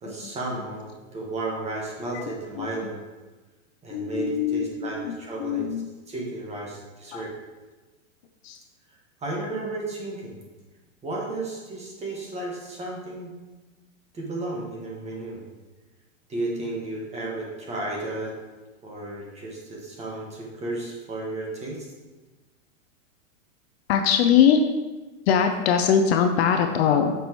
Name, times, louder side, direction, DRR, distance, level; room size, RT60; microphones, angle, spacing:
voice 1, 0.0-3.0 3.8-5.7 6.1-7.3 9.2-10.4 11.0-13.3 14.1-15.4 16.3-18.4 18.8-21.9, right 2 dB, 15° right, -2 dB, 1.5 m, -33 dB
voice 2, 2.1-2.7 3.9-5.9 7.1-7.2 8.4-8.6 23.9-24.6 25.3-27.1, left 8 dB, 50° left, 6 dB, 0.6 m, -22 dB
8.3 x 6.1 x 3.0 m, 1.2 s
hypercardioid pair, 140°, 41 cm